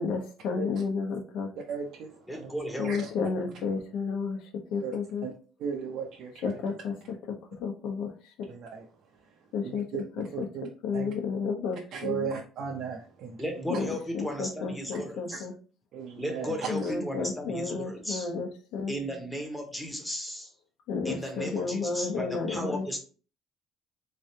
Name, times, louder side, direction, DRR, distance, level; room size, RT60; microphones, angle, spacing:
voice 1, 0.0-1.5 2.8-5.3 6.4-7.2 7.6-8.5 9.5-12.3 13.7-13.9 14.1-15.5 16.7-18.9 20.9-23.0, left 5 dB, 75° left, 3 dB, 0.9 m, -32 dB
voice 2, 1.7-2.5 2.8-3.1 4.8-4.9 5.2-5.3 5.6-6.4 8.5-8.8 9.6-10.0 10.3-10.7 10.9-11.1 11.9-13.4 15.9-16.6 16.8-16.9, right 6 dB, 55° right, 0 dB, 0.6 m, -36 dB
voice 3, 2.3-3.0 13.4-15.4 16.1-18.3 18.9-20.5 21.0-23.0, equal, 5° left, 2 dB, 0.9 m, -35 dB
3.7 x 3.3 x 2.7 m, 0.38 s
cardioid pair, 155°, 0 cm